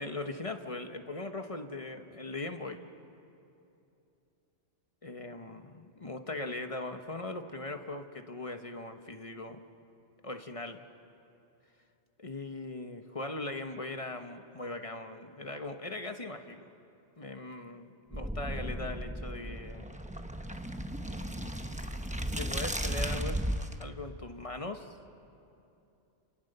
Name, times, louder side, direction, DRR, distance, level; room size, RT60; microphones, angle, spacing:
voice 1, 0.0-2.8 5.0-9.6 10.2-10.9 12.2-16.6 17.2-19.9 22.3-23.4 23.8-25.0, left 2 dB, 30° left, 6 dB, 1.2 m, -40 dB
sound 1, 18.1-23.8, right 1 dB, 5° right, 0.9 m, -35 dB
29.5 x 28.5 x 6.8 m, 2.8 s
omnidirectional pair, 1.1 m